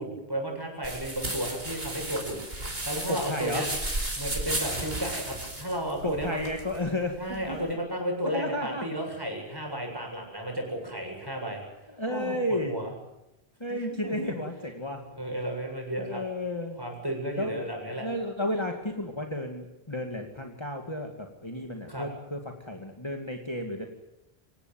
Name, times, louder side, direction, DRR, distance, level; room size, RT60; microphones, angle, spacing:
voice 1, 0.0-3.7 4.2-6.4 7.2-11.6 12.1-12.9 13.7-14.3 15.1-16.2 16.8-18.1 21.9-22.1, right 1 dB, 20° right, 1 dB, 7.8 m, -33 dB
sound 1, 0.8-7.7, right 1 dB, 65° right, 5.1 m, -34 dB
voice 2, 3.1-3.6 6.0-7.7 8.3-8.9 12.0-12.8 13.6-15.0 16.1-16.8 17.4-17.7 18.0-23.9, left 1 dB, 25° left, 3 dB, 2.3 m, -32 dB
26.5 x 17.0 x 9.3 m, 0.93 s
omnidirectional pair, 1.1 m